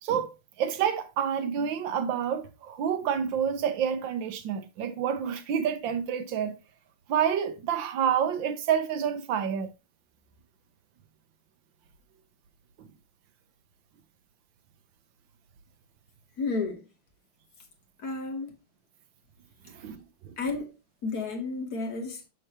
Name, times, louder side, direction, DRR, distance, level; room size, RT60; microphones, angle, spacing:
voice 1, 0.0-6.5 7.1-9.7 19.7-20.3, right 8 dB, 65° right, 1.5 m, -28 dB
voice 2, 16.4-16.9 18.0-18.5 20.4-20.7 21.0-22.2, left 3 dB, 50° left, 1.5 m, -32 dB
6.7 x 6.2 x 2.9 m
omnidirectional pair, 2.4 m